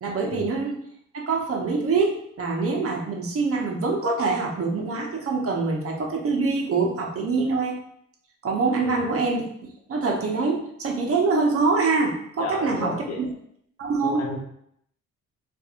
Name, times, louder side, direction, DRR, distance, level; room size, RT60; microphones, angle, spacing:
voice 1, 0.0-0.8 1.1-7.8 8.4-9.4 9.9-13.3 13.8-14.2, right 4 dB, 50° right, 0 dB, 0.9 m, -24 dB
voice 2, 12.4-13.2 14.0-14.4, left 4 dB, 55° left, 0 dB, 0.9 m, -33 dB
4.2 x 2.6 x 2.5 m, 0.70 s
cardioid pair, 90°, 30 cm